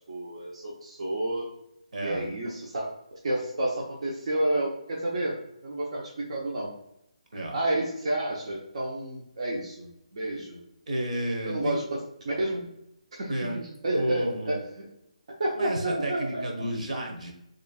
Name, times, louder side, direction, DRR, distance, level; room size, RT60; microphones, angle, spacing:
voice 1, 0.1-1.5 2.0-6.7 7.5-10.6 11.4-11.8 12.2-12.7 13.2-14.9 15.4-16.4, right 1 dB, 55° right, -4 dB, 0.9 m, -30 dB
voice 2, 1.9-2.3 7.3-7.6 10.9-11.7 13.3-13.6 13.9-14.6 15.5-17.3, right 1 dB, 75° right, 0 dB, 1.3 m, -31 dB
5.1 x 3.1 x 2.4 m, 0.82 s
hypercardioid pair, 160°, 4 cm